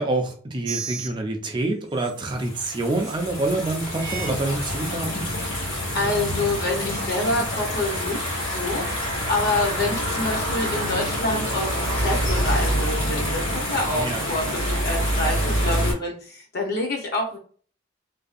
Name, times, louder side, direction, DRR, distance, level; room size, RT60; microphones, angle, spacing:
voice 1, 0.0-5.3 13.9-14.2, right 2 dB, 25° right, 3 dB, 0.4 m, -27 dB
sound 1, 0.6-1.1 1.9-2.1 3.0-3.1 3.9-4.3 5.0-5.1, right 7 dB, 75° right, 0.6 m, -33 dB
sound 2, 2.3-15.9, equal, 85° left, 1.3 m, -26 dB
voice 2, 5.9-17.4, left 2 dB, 55° left, 0 dB, 0.7 m, -27 dB
2.6 x 2.3 x 2.4 m, 0.43 s
head